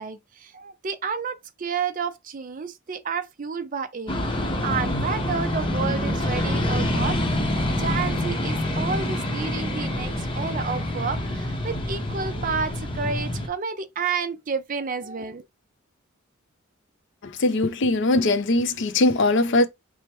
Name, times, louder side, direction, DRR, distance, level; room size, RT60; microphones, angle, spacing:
voice 1, 0.0-7.2 7.8-15.4, right 5 dB, 40° right, 0.5 m, -30 dB
sound 1, 4.1-13.5, left 1 dB, 25° left, 0.7 m, -26 dB
voice 2, 17.2-19.7, left 2 dB, 55° left, 0.5 m, -21 dB
4.4 x 2.1 x 4.6 m
head